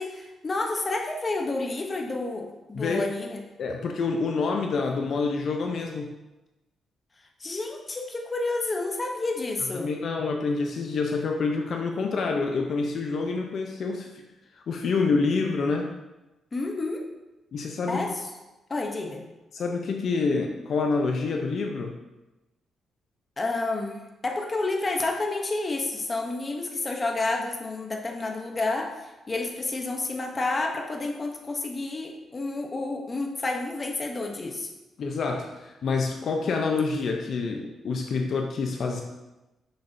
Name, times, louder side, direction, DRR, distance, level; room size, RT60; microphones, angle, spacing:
voice 1, 0.0-3.4 7.4-9.9 16.5-17.0 17.9-18.2 18.7-19.2 23.4-34.7, left 2 dB, 25° left, 2 dB, 0.8 m, -30 dB
voice 2, 3.6-6.2 9.7-14.1 14.6-15.9 17.5-18.0 19.5-21.9 35.0-39.0, left 4 dB, 60° left, 2 dB, 0.6 m, -27 dB
6.6 x 6.1 x 2.7 m, 1.0 s
cardioid pair, 125°, 0 cm